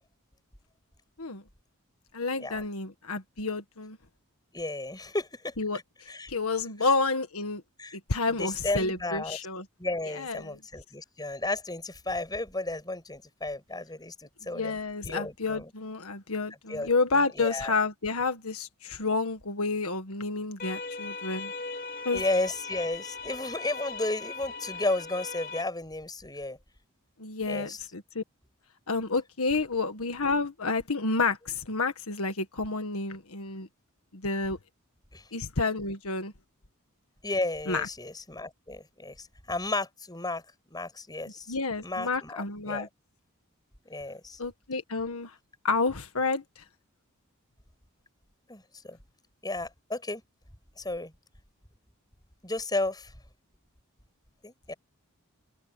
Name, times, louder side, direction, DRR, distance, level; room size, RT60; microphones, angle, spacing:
voice 1, 2.1-4.0 5.6-5.8 6.3-7.6 8.1-9.6 10.1-10.6 14.5-21.5 22.0-22.2 27.2-28.2 28.9-33.7 34.1-34.6 35.3-36.3 37.7-37.9 41.5-42.9 44.4-45.3 45.6-46.6, left 3 dB, 75° left, 1.7 m, -30 dB
voice 2, 4.5-5.5 6.1-6.3 7.8-8.0 8.4-9.4 9.8-14.8 15.0-15.7 16.7-17.7 22.1-26.6 27.5-27.8 35.1-35.2 37.2-40.4 40.7-41.5 41.8-42.9 43.9-44.4 48.5-49.0 49.4-50.2 50.8-51.1 52.4-53.1 54.4-54.7, left 2 dB, 20° left, 7.1 m, -33 dB
sound 1, 20.6-25.6, left 4 dB, 40° left, 2.9 m, -39 dB
head